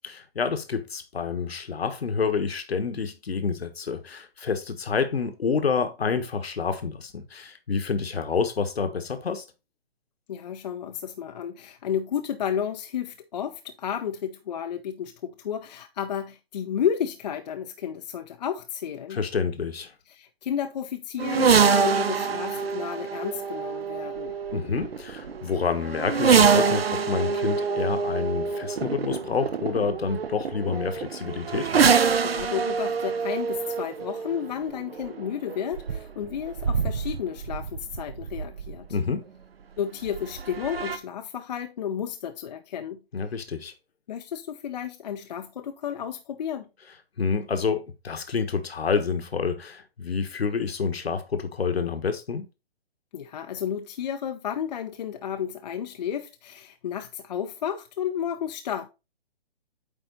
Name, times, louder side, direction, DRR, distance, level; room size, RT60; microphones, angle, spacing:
voice 1, 0.0-9.5 19.1-19.9 24.5-31.7 38.9-39.3 43.1-43.7 47.2-52.5, left 5 dB, 75° left, 1.4 m, -28 dB
voice 2, 10.3-19.2 20.1-24.4 32.2-38.9 39.8-43.0 44.1-46.7 53.1-58.9, left 9 dB, 45° left, 0.6 m, -32 dB
sound 1, 21.2-39.0 40.0-41.0, right 6 dB, 70° right, 1.0 m, -25 dB
8.9 x 3.9 x 4.0 m
figure-of-eight pair, 140°, 31 cm